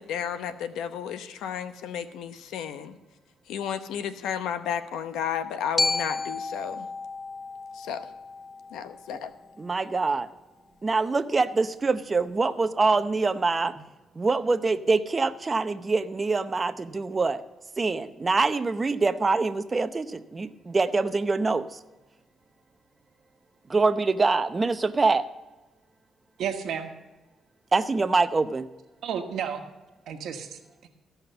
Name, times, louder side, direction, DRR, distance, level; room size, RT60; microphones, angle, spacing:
voice 1, 0.0-3.0 3.5-6.9 7.7-8.1 8.7-9.3, left 8 dB, 85° left, 11 dB, 0.8 m, -32 dB
Glockenspiel, 5.8-9.9, left 3 dB, 20° left, 0.4 m, -32 dB
voice 2, 9.6-10.3 10.8-13.8 14.2-17.4 17.8-21.8 23.7-25.3 27.7-28.7, right 3 dB, 30° right, 11 dB, 0.7 m, -25 dB
voice 3, 26.4-26.9 29.0-29.6 30.1-30.9, right 8 dB, 70° right, 5 dB, 1.3 m, -32 dB
15.0 x 5.8 x 6.7 m, 1.1 s
cardioid pair, 90°, 0 cm